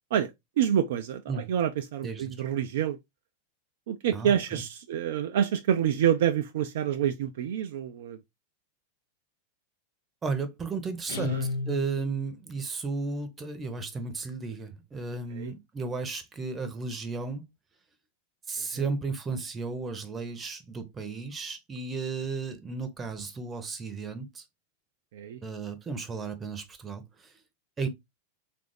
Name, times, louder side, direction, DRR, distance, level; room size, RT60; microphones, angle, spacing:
voice 1, 0.6-3.0 3.9-8.2 11.1-11.5 15.3-15.5 18.6-18.9 25.1-25.4, right 9 dB, 55° right, 0.3 m, -27 dB
voice 2, 2.0-2.3 4.1-4.6 10.2-11.4 11.6-17.4 18.5-24.4 25.4-27.3 27.8-27.9, right 4 dB, 20° right, 0.7 m, -34 dB
Guitar, 11.1-12.4, left 3 dB, 60° left, 0.4 m, -33 dB
3.6 x 2.4 x 3.2 m
figure-of-eight pair, 90°, 0 cm